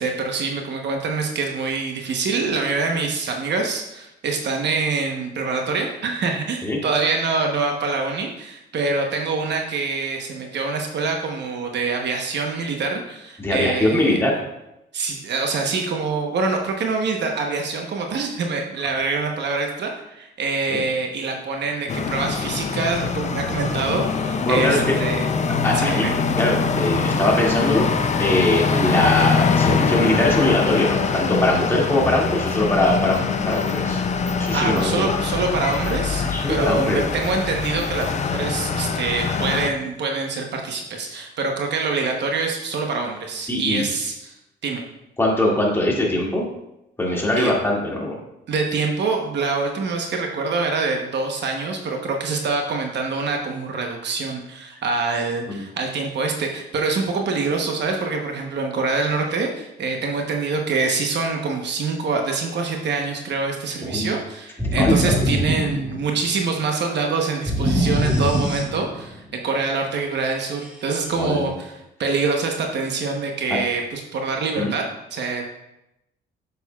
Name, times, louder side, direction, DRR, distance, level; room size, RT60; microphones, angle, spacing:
voice 1, 0.0-14.2 14.9-25.3 25.7-26.1 34.5-44.3 44.6-44.8 47.3-47.5 48.5-71.7 72.0-74.8 75.1-75.4, right 4 dB, 60° right, 2 dB, 1.0 m, -25 dB
voice 2, 13.4-14.4 20.7-20.8 24.5-25.0 25.6-26.1 26.4-27.9 28.2-34.0 34.4-35.1 36.2-37.0 43.5-43.8 45.2-46.5 47.0-48.2 55.5-55.6 63.8-64.1 64.8-65.1 71.2-71.5 74.6-74.7, left 1 dB, 10° left, -3 dB, 2.2 m, -21 dB
sound 1, 21.9-39.7, left 5 dB, 35° left, 0.5 m, -23 dB
sound 2, 64.6-66.3 67.5-69.1, equal, 5° right, 1.3 m, -22 dB
8.3 x 6.8 x 2.4 m, 0.88 s
cardioid pair, 90°, 20 cm